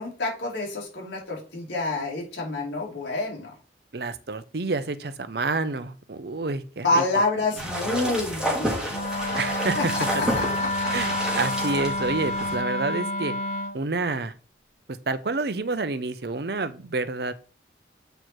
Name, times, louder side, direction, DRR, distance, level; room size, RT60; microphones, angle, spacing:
voice 1, 0.0-3.5 6.8-8.9 9.8-10.9, left 2 dB, 85° left, -2 dB, 3.3 m, -28 dB
voice 2, 3.9-7.0 9.4-9.9 10.9-13.3 13.7-14.3 15.1-17.3, right 3 dB, 60° right, 13 dB, 0.7 m, -28 dB
sound 1, 7.6-12.6, right 1 dB, 5° right, 2.3 m, -30 dB
Wind instrument woodwind instrument, 8.9-13.8, left 1 dB, 40° left, 1.3 m, -29 dB
7.9 x 4.5 x 4.5 m, 0.37 s
head